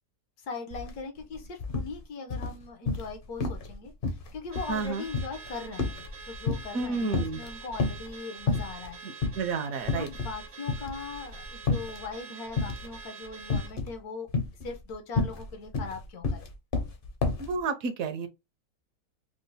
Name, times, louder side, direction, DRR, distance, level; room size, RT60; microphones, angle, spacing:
voice 1, 0.4-9.0 9.9-14.3 14.6-16.5, left 4 dB, 75° left, 1.3 m, -40 dB
sound 1, 0.7-0.9 1.2-1.9 2.3-3.1 3.4-3.7 4.0-6.8 7.1-8.1 8.5-8.9 9.2-9.4 9.8-10.4 10.7-12.0 12.6-13.0 13.5-14.0 14.3-17.5, left 4 dB, 50° left, 0.7 m, -30 dB
Car / Alarm, 4.5-13.8, right 5 dB, 50° right, 0.7 m, -46 dB
voice 2, 4.7-5.0 6.7-7.4 9.4-10.1 17.4-18.3, right 4 dB, 70° right, 1.0 m, -30 dB
5.0 x 2.0 x 2.6 m
omnidirectional pair, 1.6 m